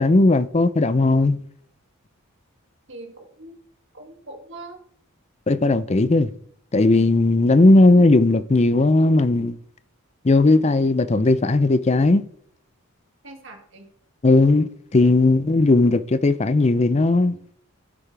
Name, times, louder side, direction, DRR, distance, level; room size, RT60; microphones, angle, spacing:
voice 1, 0.0-1.4 5.5-6.3 6.7-9.6 10.2-12.2 14.2-17.4, left 2 dB, 30° left, 0.5 m, -17 dB
voice 2, 2.9-3.6 3.9-4.8 13.2-13.9, right 2 dB, 60° right, 2.4 m, -41 dB
14.0 x 8.7 x 3.4 m
head